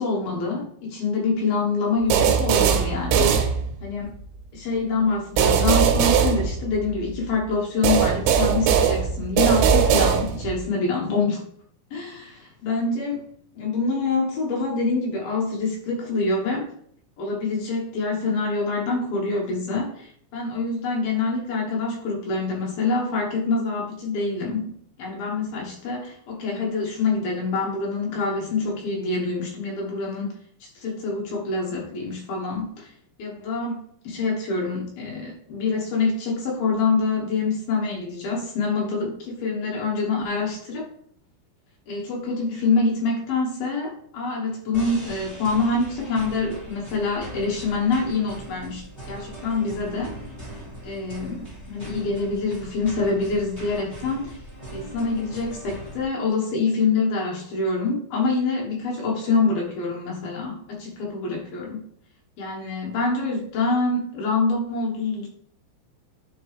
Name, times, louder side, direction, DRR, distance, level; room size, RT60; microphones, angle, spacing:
voice 1, 0.0-3.3 3.8-4.1 4.5-11.4 11.9-13.2 13.5-16.7 17.2-24.6 25.0-30.3 30.6-32.9 33.2-33.8 34.0-40.9 41.9-50.1 50.5-54.4 54.7-61.8 62.4-65.3, left 3 dB, 65° left, -2 dB, 2.6 m, -26 dB
sound 1, 2.1-4.0 5.4-7.1 7.8-10.6, right 7 dB, 85° right, 3.2 m, -20 dB
sound 2, 44.7-56.0, right 1 dB, 15° left, 0.9 m, -40 dB
9.8 x 5.2 x 3.3 m, 0.63 s
omnidirectional pair, 5.6 m